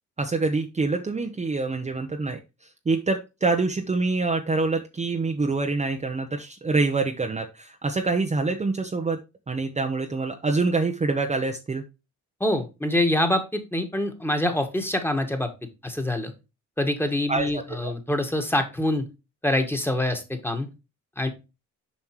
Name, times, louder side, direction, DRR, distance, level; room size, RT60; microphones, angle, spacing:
voice 1, 0.2-9.2 9.5-11.8 17.3-17.9, right 3 dB, 25° right, 4 dB, 0.8 m, -26 dB
voice 2, 12.4-15.5 15.8-16.3 16.8-19.0 19.4-20.7 21.2-21.3, left 1 dB, 5° left, 6 dB, 1.7 m, -25 dB
7.3 x 5.3 x 3.0 m, 0.27 s
cardioid pair, 90°, 30 cm